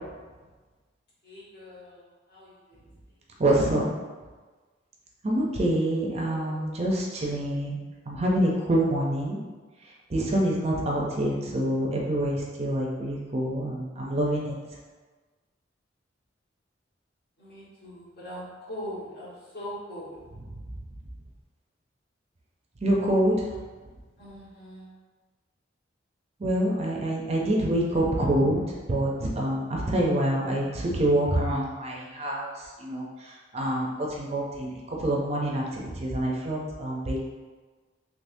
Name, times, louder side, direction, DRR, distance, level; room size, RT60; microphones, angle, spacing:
voice 1, 1.2-2.0 2.3-2.8 6.2-6.6 17.4-20.2 24.2-24.9, equal, 55° left, -8 dB, 1.4 m, -41 dB
voice 2, 3.4-3.9 5.2-7.8 8.1-9.4 10.1-14.5 20.3-20.8 22.8-23.4 26.4-28.6 28.9-37.2, right 1 dB, 35° right, -3 dB, 0.5 m, -26 dB
3.5 x 3.1 x 2.6 m, 1.3 s
head